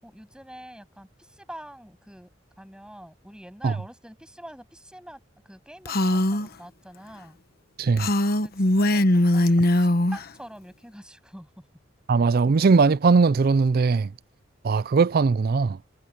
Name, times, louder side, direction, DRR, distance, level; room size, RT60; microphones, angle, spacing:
voice 1, 0.0-2.3 2.6-7.4 8.4-11.7, equal, 5° right, 8.0 m, -45 dB
Female speech woman speaking, 5.9-6.5 8.0-10.2, left 1 dB, 50° left, 1.2 m, -21 dB
voice 2, 7.8-8.1 12.1-14.1 14.6-15.8, right 4 dB, 50° right, 0.4 m, -20 dB
head